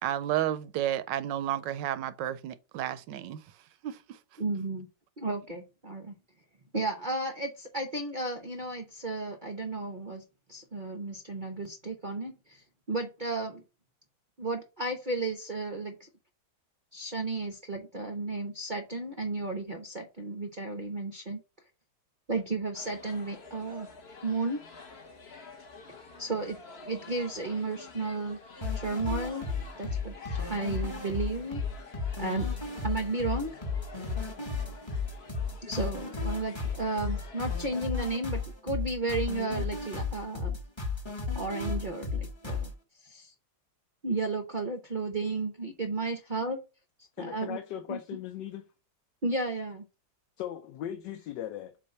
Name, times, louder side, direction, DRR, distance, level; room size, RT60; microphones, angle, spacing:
voice 1, 0.0-3.4 3.8-4.2, right 11 dB, 75° right, 1.2 m, -32 dB
voice 2, 4.4-4.9 5.2-6.2 6.7-10.2 10.5-13.6 14.4-16.1 16.9-21.4 22.3-23.9 24.2-24.6 26.2-28.4 28.7-29.5 29.8-30.1 30.5-31.6 32.2-32.5 32.8-33.6 35.6-40.6 41.3-42.7 43.0-43.3 44.0-46.6 47.2-47.6 47.9-48.0 49.2-49.8, right 3 dB, 50° right, 0.5 m, -33 dB
sound 1, 22.7-37.9, left 4 dB, 40° left, 1.1 m, -49 dB
sound 2, 28.6-42.7, left 4 dB, 15° left, 1.0 m, -34 dB
voice 3, 47.2-48.6 50.4-51.9, left 11 dB, 75° left, 1.3 m, -38 dB
7.4 x 2.5 x 5.3 m
omnidirectional pair, 2.0 m